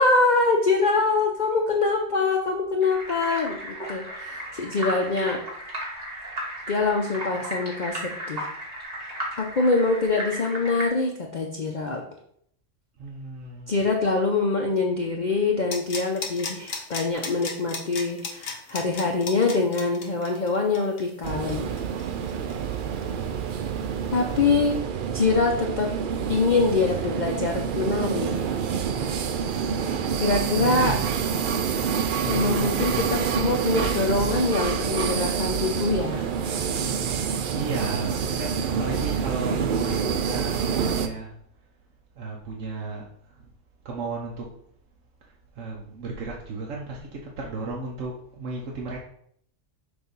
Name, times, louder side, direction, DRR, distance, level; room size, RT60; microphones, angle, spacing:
voice 1, 0.0-5.4 6.7-8.5 9.4-12.0 13.7-21.7 24.1-24.8 25.1-25.9 26.3-28.5 30.1-31.0 32.2-36.3, left 3 dB, 45° left, 1 dB, 0.7 m, -24 dB
sound 1, 2.8-10.9, right 1 dB, 30° right, 1.8 m, -35 dB
voice 2, 13.0-13.9 24.1-24.6 37.5-41.4 42.2-43.5 43.8-44.5 45.2-49.0, right 3 dB, 75° right, -2 dB, 1.2 m, -35 dB
sound 2, 15.7-23.2 23.5-23.6, left 4 dB, 85° left, 1.3 m, -35 dB
sound 3, 21.2-41.1, right 7 dB, 60° right, 0.6 m, -27 dB
6.8 x 2.6 x 5.3 m, 0.66 s
omnidirectional pair, 1.3 m